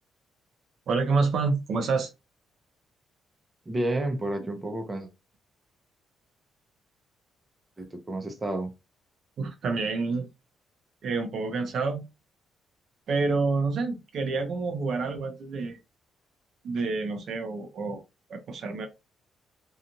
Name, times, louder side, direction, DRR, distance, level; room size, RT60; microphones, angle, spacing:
voice 1, 0.9-2.1 9.4-10.3 11.0-12.0 13.1-15.8 16.6-18.0 18.3-18.9, right 4 dB, 65° right, 0.7 m, -28 dB
voice 2, 3.7-5.1 7.8-8.7, right 1 dB, 25° right, 0.7 m, -30 dB
2.8 x 2.4 x 2.6 m
cardioid pair, 90°, 0 cm